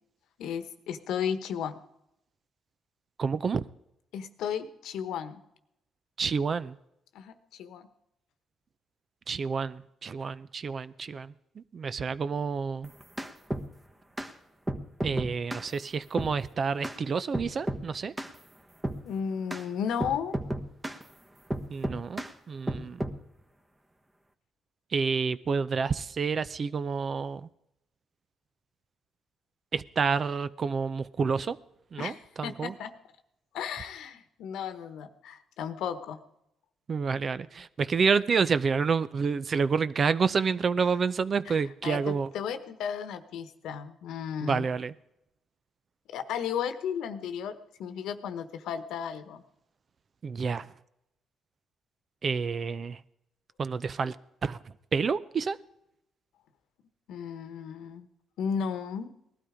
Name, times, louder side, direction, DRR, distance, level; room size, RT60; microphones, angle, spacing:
voice 1, 0.4-1.8 4.1-5.4 7.1-7.9 19.0-20.4 32.0-32.9 33.5-36.2 41.5-41.6 41.8-44.7 46.1-49.4 57.1-58.1 58.4-59.1, left 7 dB, 85° left, 10 dB, 1.2 m, -34 dB
voice 2, 3.2-3.6 6.2-6.8 9.3-12.9 15.0-18.1 21.7-23.0 24.9-27.5 29.7-31.6 31.9-32.7 36.9-42.3 44.4-44.9 50.2-50.7 52.2-53.0 53.6-54.2 54.4-54.6 54.9-55.6, right 5 dB, 45° right, 16 dB, 0.6 m, -29 dB
sound 1, 12.8-13.7 14.2-14.3 14.7-15.7 16.2-16.4 16.8-17.0 17.3-17.9 18.2-18.4 18.8-19.0 19.5-19.6 20.0-21.0 21.5-22.3 22.7-23.2, right 1 dB, 15° right, 1.3 m, -33 dB
19.0 x 12.5 x 5.0 m, 0.82 s
cardioid pair, 90°, 0 cm